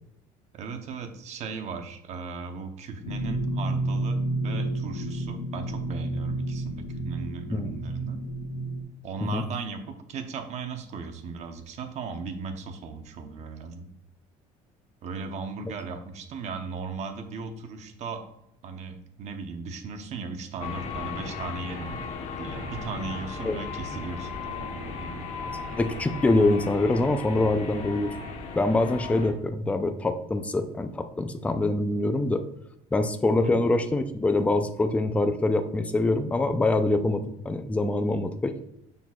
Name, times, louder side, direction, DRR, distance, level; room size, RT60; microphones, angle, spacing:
voice 1, 0.5-8.2 9.0-13.9 15.0-18.2 18.6-22.0 22.3-25.3 33.4-33.5, right 4 dB, 50° right, 6 dB, 0.9 m, -37 dB
sound 1, 3.0-8.8, right 2 dB, 75° left, 1.4 m, -30 dB
sound 2, 20.6-29.3, left 4 dB, 50° left, 1.2 m, -36 dB
voice 2, 25.7-28.1 28.6-32.4 32.9-38.5, left 2 dB, 10° left, 8 dB, 0.4 m, -24 dB
6.9 x 5.9 x 2.4 m, 0.79 s
cardioid pair, 140°, 15 cm